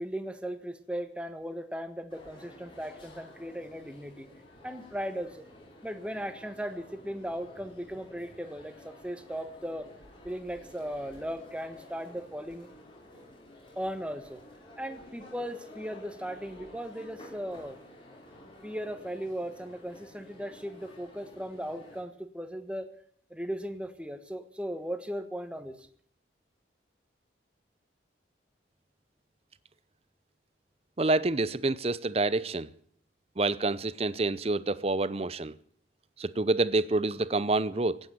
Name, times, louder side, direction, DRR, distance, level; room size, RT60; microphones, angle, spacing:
voice 1, 0.0-4.3 4.6-5.4 5.8-9.9 10.2-12.7 13.7-14.4 14.8-17.8 18.6-22.9 23.3-25.7, equal, 5° right, 1.3 m, -37 dB
sound 1, 2.1-22.0, left 1 dB, 25° left, 4.7 m, -52 dB
voice 2, 31.0-32.7 33.4-35.6 36.2-38.0, right 2 dB, 30° right, 0.6 m, -27 dB
16.5 x 8.9 x 9.3 m
head